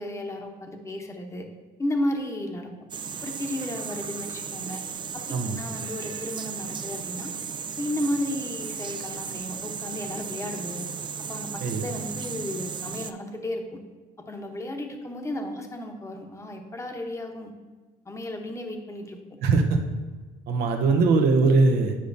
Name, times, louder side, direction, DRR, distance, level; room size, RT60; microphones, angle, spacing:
voice 1, 0.0-1.5 1.8-2.7 3.2-4.8 5.1-7.3 7.8-10.9 11.3-13.8 14.3-17.5 18.1-19.2, left 1 dB, 15° left, 3 dB, 0.9 m, -33 dB
sound 1, 2.9-13.1, right 6 dB, 30° right, 0.3 m, -35 dB
voice 2, 19.4-19.8 20.5-22.0, right 4 dB, 75° right, 4 dB, 0.8 m, -21 dB
9.9 x 5.1 x 2.7 m, 1.3 s
cardioid pair, 110°, 17 cm